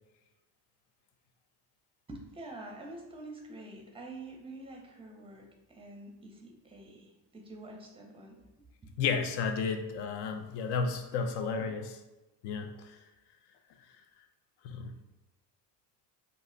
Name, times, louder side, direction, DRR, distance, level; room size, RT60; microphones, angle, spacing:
voice 1, 2.1-9.0, right 2 dB, 15° right, 2 dB, 0.6 m, -47 dB
voice 2, 9.0-12.0 12.4-13.0 14.6-14.9, left 5 dB, 65° left, 6 dB, 0.5 m, -32 dB
2.5 x 2.0 x 3.7 m, 1.1 s
supercardioid pair, 80°, 44 cm